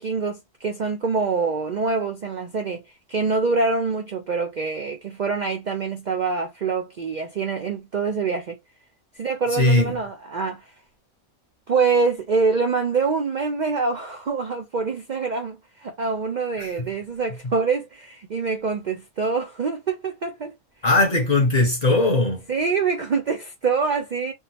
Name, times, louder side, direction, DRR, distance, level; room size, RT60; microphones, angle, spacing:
voice 1, 0.0-2.8 3.1-8.6 9.2-10.7 11.7-20.5 22.5-24.3, right 4 dB, 75° right, 0.4 m, -25 dB
voice 2, 9.5-9.9 16.6-16.9 20.8-22.4, left 2 dB, 40° left, 0.7 m, -19 dB
3.6 x 2.0 x 2.7 m
omnidirectional pair, 1.5 m